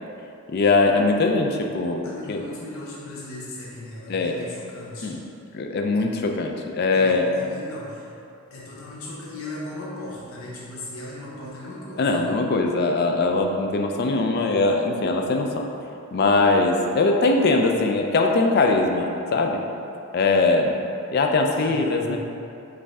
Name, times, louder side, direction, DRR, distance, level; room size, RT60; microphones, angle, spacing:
voice 1, 0.5-2.0 2.3-2.4 4.1-4.4 5.0-5.2 5.5-7.3 12.0-15.6 16.1-19.6 20.1-20.8 21.1-22.2, left 3 dB, 45° left, 3 dB, 0.3 m, -21 dB
voice 2, 2.0-5.2 6.9-8.1 8.5-12.3 21.5-22.2, left 1 dB, 70° left, -6 dB, 0.7 m, -37 dB
5.2 x 2.6 x 3.5 m, 2.7 s
head